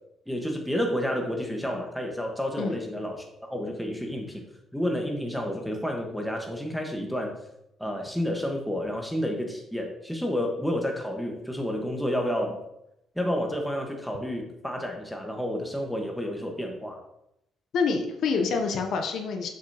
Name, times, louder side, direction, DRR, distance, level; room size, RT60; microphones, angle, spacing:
voice 1, 0.3-4.4 4.7-7.4 7.8-12.6 13.1-17.0, equal, ahead, 1 dB, 1.5 m, -30 dB
voice 2, 17.7-19.5, left 4 dB, 70° left, 4 dB, 0.9 m, -27 dB
7.3 x 5.8 x 3.0 m, 0.83 s
cardioid pair, 90°, 0 cm